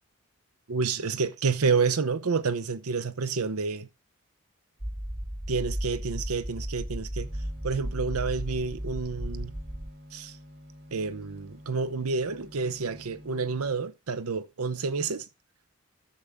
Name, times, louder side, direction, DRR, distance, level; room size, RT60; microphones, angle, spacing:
voice 1, 0.7-3.9 5.5-7.3 7.6-9.5 10.1-10.3 10.9-15.2, right 4 dB, 90° right, 0.7 m, -29 dB
sound 1, 4.8-9.9, equal, 10° right, 0.5 m, -35 dB
sound 2, 7.2-13.7, left 1 dB, 50° right, 4.0 m, -49 dB
10.5 x 7.5 x 3.4 m
head